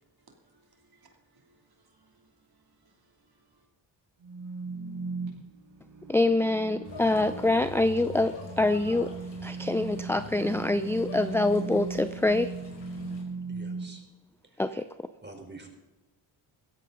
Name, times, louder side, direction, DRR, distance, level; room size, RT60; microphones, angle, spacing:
voice 1, 0.3-3.6, right 3 dB, 50° right, 2 dB, 3.0 m, -65 dB
sound 1, 4.2-13.8, right 4 dB, 70° right, 5.0 m, -38 dB
voice 2, 6.1-9.1 9.4-12.5 14.6-14.8, left 2 dB, 5° left, 12 dB, 0.5 m, -25 dB
sound 2, 6.8-13.2, left 4 dB, 65° left, 5.4 m, -45 dB
voice 3, 13.5-14.0 15.2-15.7, right 2 dB, 20° right, 3 dB, 3.9 m, -46 dB
16.0 x 14.5 x 3.9 m, 1.1 s
cardioid pair, 60°, 46 cm